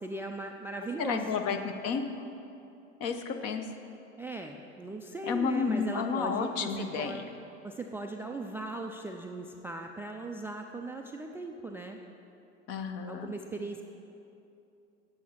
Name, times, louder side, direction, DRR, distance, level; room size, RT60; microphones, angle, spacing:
voice 1, 0.0-1.3 4.2-7.2 7.6-12.0 13.1-13.8, right 2 dB, 5° right, 3 dB, 0.3 m, -38 dB
voice 2, 1.0-2.3 3.0-3.7 5.2-7.2 12.7-13.3, left 5 dB, 45° left, 6 dB, 1.0 m, -31 dB
8.3 x 6.6 x 7.2 m, 2.7 s
figure-of-eight pair, 80°, 35 cm